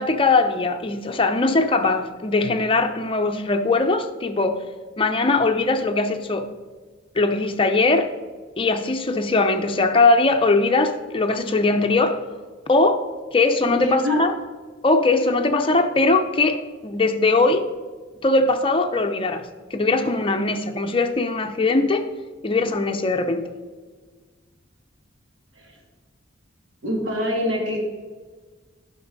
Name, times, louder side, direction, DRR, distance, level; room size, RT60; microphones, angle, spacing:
voice 1, 0.0-4.6 5.0-6.5 7.1-8.1 8.6-12.2 12.7-13.1 13.3-14.3 14.8-17.7 18.2-19.4 19.7-22.1 22.4-23.5, left 3 dB, 30° left, 0.6 m, -20 dB
voice 2, 13.7-14.2 25.6-25.7 26.8-27.9, left 1 dB, 85° right, 2.2 m, -25 dB
11.0 x 5.9 x 4.1 m
head